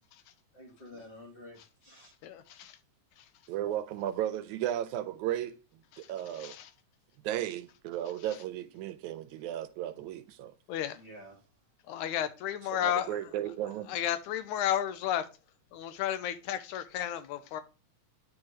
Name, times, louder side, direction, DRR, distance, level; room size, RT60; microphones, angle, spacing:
voice 1, 0.5-2.1 10.9-11.4 12.1-12.2, left 1 dB, 30° left, 1.1 m, -50 dB
voice 2, 2.2-2.8 6.3-6.7 10.7-11.0 11.9-13.1 13.9-15.3 15.7-17.6, left 11 dB, 85° left, 2.1 m, -32 dB
voice 3, 3.5-5.6 6.0-6.6 7.2-10.5 12.7-13.9, right 12 dB, 80° right, 1.9 m, -35 dB
9.6 x 4.7 x 3.1 m
omnidirectional pair, 3.4 m